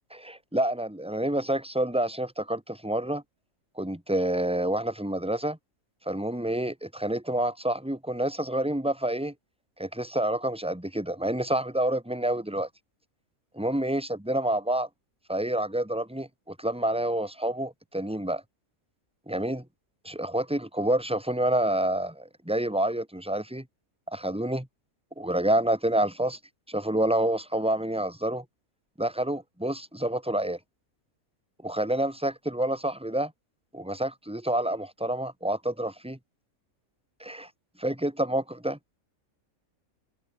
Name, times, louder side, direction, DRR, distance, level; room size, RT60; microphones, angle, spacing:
voice 1, 0.2-3.2 3.8-5.6 6.0-9.3 9.8-12.7 13.5-14.9 15.3-18.4 19.3-19.6 20.0-23.6 24.1-24.7 25.2-26.4 26.7-28.4 29.0-30.6 31.6-33.3 33.7-36.2 37.2-37.5 37.8-38.8, right 1 dB, 5° right, 3.4 m, -28 dB
omnidirectional pair, 1.5 m